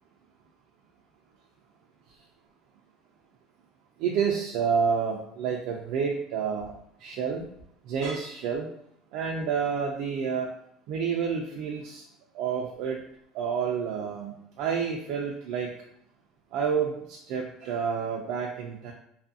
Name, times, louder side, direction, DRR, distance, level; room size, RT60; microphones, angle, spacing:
voice 1, 4.0-6.7 7.0-7.5 7.9-8.7 9.1-10.5 10.9-12.0 12.3-13.0 13.3-15.7 16.5-18.9, right 6 dB, 55° right, -1 dB, 0.3 m, -29 dB
2.6 x 2.4 x 2.5 m, 0.72 s
cardioid pair, 175°, 0 cm